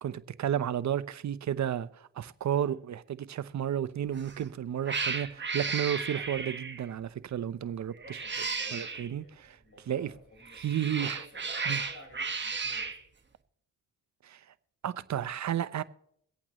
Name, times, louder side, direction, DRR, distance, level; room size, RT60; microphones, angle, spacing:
voice 1, 0.0-8.2 8.7-9.6 9.9-10.1 10.5-11.2 11.7-11.8 14.2-14.4 14.8-15.8, right 10 dB, 55° right, 0.7 m, -32 dB
Cat, 4.1-4.4 4.8-6.9 8.0-9.1 10.4-13.0, right 4 dB, 30° right, 1.4 m, -34 dB
voice 2, 8.1-10.6 11.0-12.9, left 1 dB, 40° left, 4.7 m, -53 dB
23.5 x 8.5 x 3.0 m
cardioid pair, 65°, 34 cm